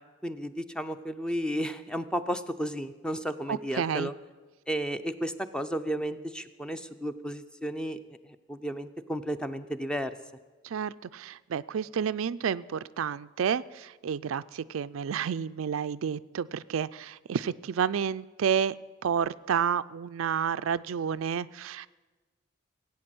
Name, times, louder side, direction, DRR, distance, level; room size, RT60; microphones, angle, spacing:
voice 1, 0.2-4.1 4.7-8.0 8.2-10.2, equal, 5° left, 10 dB, 0.5 m, -33 dB
voice 2, 3.5-4.1 10.6-18.7 19.0-21.9, right 7 dB, 90° right, 15 dB, 0.4 m, -30 dB
17.5 x 8.6 x 7.7 m, 1.3 s
head